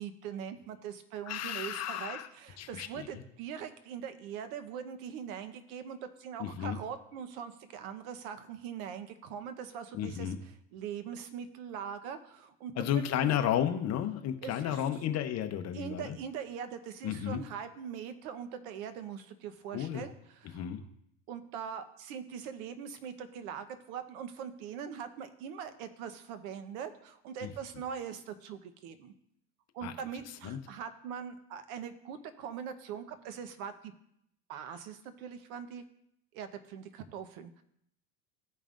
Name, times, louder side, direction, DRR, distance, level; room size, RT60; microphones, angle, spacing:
voice 1, 0.0-10.3 10.7-13.4 14.4-14.8 15.7-20.7 21.3-29.1 29.7-33.9 34.5-35.8 36.3-37.6, right 8 dB, 65° right, 10 dB, 1.0 m, -42 dB
voice 2, 1.3-2.3 2.6-3.2 6.4-6.8 9.9-10.4 12.8-16.2 17.0-17.4 19.7-20.1 20.5-20.8 27.4-27.5 29.8-29.9 30.4-30.6, left 10 dB, 35° left, 8 dB, 0.8 m, -33 dB
16.0 x 5.4 x 2.5 m, 0.74 s
supercardioid pair, 125°, 46 cm